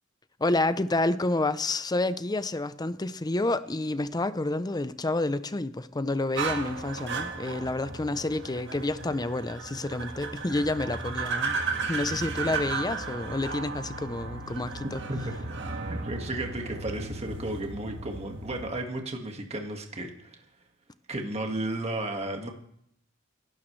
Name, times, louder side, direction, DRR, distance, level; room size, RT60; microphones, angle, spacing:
voice 1, 0.4-11.6 11.9-15.0, left 2 dB, 20° left, 0.6 m, -29 dB
sound 1, 6.4-18.7, right 4 dB, 60° right, 1.7 m, -35 dB
voice 2, 15.9-20.4 21.1-22.5, right 1 dB, 30° right, 1.8 m, -33 dB
25.5 x 12.5 x 3.3 m
head